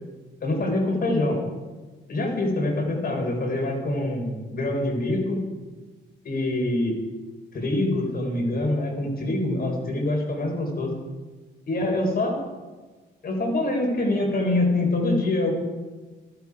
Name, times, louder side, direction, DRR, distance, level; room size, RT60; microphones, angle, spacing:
voice 1, 0.4-1.4 2.1-5.4 6.2-7.0 7.5-10.9 11.7-12.4 13.2-15.5, left 2 dB, 50° left, 1 dB, 4.2 m, -25 dB
14.5 x 12.0 x 4.8 m, 1.3 s
cardioid pair, 90°, 20 cm